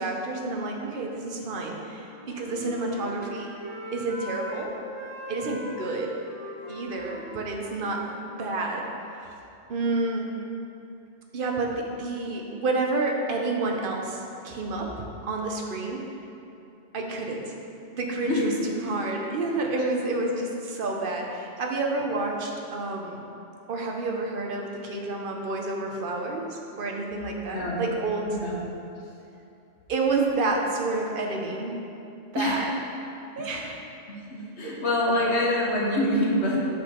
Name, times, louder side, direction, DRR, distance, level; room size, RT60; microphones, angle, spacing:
voice 1, 0.0-3.5 3.9-4.7 5.3-6.2 6.7-8.0 8.4-9.3 9.7-10.3 11.3-14.9 15.2-16.0 16.9-17.5 17.9-23.2 23.7-28.3 29.9-31.7 32.3-32.7 33.4-33.8 34.6-34.7, right 3 dB, 50° right, 1 dB, 0.9 m, -29 dB
Wind instrument woodwind instrument, 2.0-4.6 4.9-8.6, left 1 dB, 15° right, 1.7 m, -41 dB
voice 2, 27.5-27.8 28.3-28.6 32.3-32.6 33.4-33.7 34.1-36.6, left 1 dB, 65° left, -3 dB, 1.4 m, -26 dB
6.4 x 5.8 x 4.3 m, 2.8 s
omnidirectional pair, 1.3 m